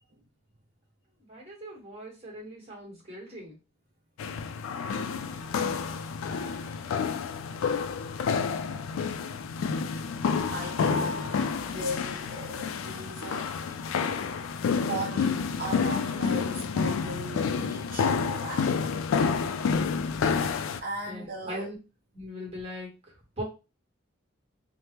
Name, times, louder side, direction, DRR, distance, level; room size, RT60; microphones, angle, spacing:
voice 1, 1.2-3.6 21.1-21.8 22.1-23.4, equal, 30° right, 1.2 m, -40 dB
sound 1, 4.2-20.8, left 5 dB, 85° left, 0.3 m, -29 dB
voice 2, 6.2-7.0 10.5-11.2 11.6-13.6 14.8-18.8 20.8-21.7, right 1 dB, 45° right, 0.5 m, -38 dB
3.3 x 2.0 x 2.9 m
head